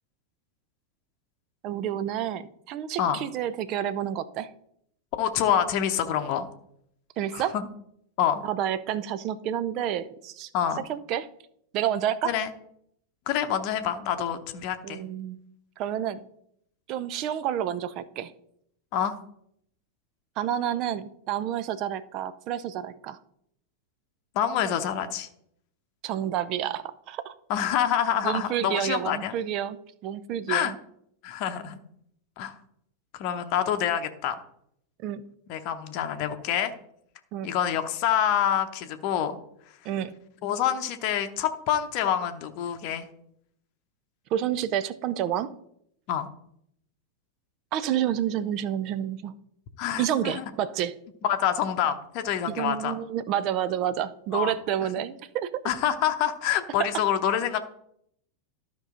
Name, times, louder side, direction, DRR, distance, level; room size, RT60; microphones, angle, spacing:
voice 1, 1.6-4.5 7.2-7.6 8.4-10.5 10.9-11.3 11.7-12.3 14.8-15.4 15.8-16.2 16.9-18.3 20.4-23.2 26.0-27.3 28.2-29.8 30.0-30.8 35.0-35.2 37.3-37.5 39.8-40.1 44.3-45.5 47.7-49.3 50.0-51.0 52.5-55.6, right 10 dB, 40° right, 13 dB, 0.5 m, -29 dB
voice 2, 5.2-6.5 7.3-7.7 8.2-8.4 10.5-10.8 12.2-12.5 13.3-15.0 18.9-19.2 24.3-25.3 27.5-29.3 30.5-30.7 31.2-31.8 32.4-32.5 33.1-34.4 35.5-36.7 37.4-39.4 40.4-43.1 46.1-46.3 49.8-50.4 51.2-52.9 54.3-54.5 55.6-57.6, left 9 dB, 45° left, 7 dB, 0.8 m, -27 dB
12.5 x 5.4 x 3.8 m, 0.71 s
figure-of-eight pair, 90°, 0 cm